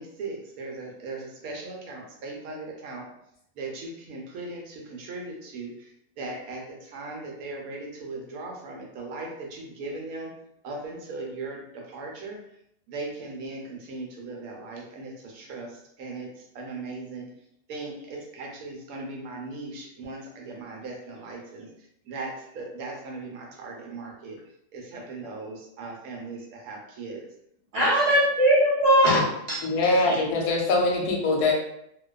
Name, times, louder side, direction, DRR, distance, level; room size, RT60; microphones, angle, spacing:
voice 1, 0.0-3.1 3.6-5.9 6.2-10.3 10.6-12.4 12.9-17.3 17.7-21.7 22.1-24.4 24.7-27.3 27.7-28.1, right 3 dB, 75° right, 0 dB, 1.0 m, -38 dB
voice 2, 27.7-30.2, equal, 50° right, -9 dB, 0.4 m, -21 dB
voice 3, 29.6-31.5, left 2 dB, 85° left, 0 dB, 1.1 m, -23 dB
2.5 x 2.2 x 2.2 m, 0.76 s
omnidirectional pair, 1.6 m